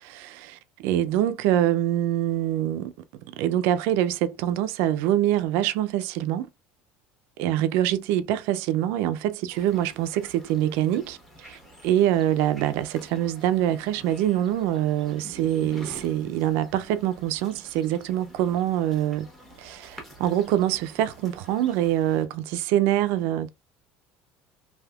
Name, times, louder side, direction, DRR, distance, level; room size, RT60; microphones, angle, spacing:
voice 1, 0.0-2.9 3.3-6.5 7.4-19.3 19.6-23.5, right 12 dB, 65° right, 0.4 m, -25 dB
sound 1, 9.5-22.3, right 1 dB, 5° left, 0.8 m, -48 dB
3.3 x 2.7 x 2.3 m
cardioid pair, 175°, 4 cm